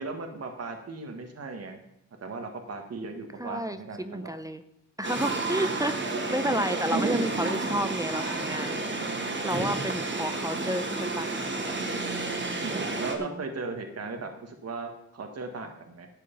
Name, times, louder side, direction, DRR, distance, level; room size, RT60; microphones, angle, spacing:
voice 1, 0.0-1.8 2.2-4.3 12.6-16.1, right 3 dB, 50° right, 4 dB, 1.7 m, -37 dB
voice 2, 3.4-4.6 5.0-8.8 9.2-11.8 12.4-12.8 13.2-13.4, right 1 dB, 10° right, 10 dB, 0.7 m, -31 dB
sound 1, 5.0-13.2, right 2 dB, 35° right, 2.0 m, -30 dB
12.0 x 8.2 x 5.3 m, 0.79 s
cardioid pair, 90°, 31 cm